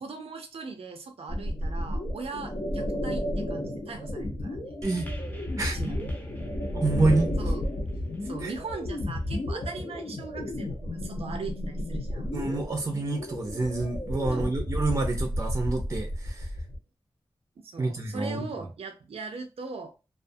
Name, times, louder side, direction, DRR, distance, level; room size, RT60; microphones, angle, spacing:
voice 1, 0.0-4.8 5.7-6.2 7.4-7.7 8.2-12.3 14.3-14.5 17.6-20.0, right 4 dB, 85° right, 0.5 m, -39 dB
sound 1, 1.3-16.8, left 1 dB, 60° left, 0.7 m, -32 dB
sound 2, 4.8-9.4 10.2-10.3, equal, 15° left, 0.6 m, -42 dB
voice 2, 4.8-5.2 5.6-5.8 6.7-7.4 8.4-8.5 12.3-16.5 17.8-18.5, right 3 dB, 30° right, 0.5 m, -28 dB
2.3 x 2.3 x 2.6 m
wide cardioid pair, 105°, 10 cm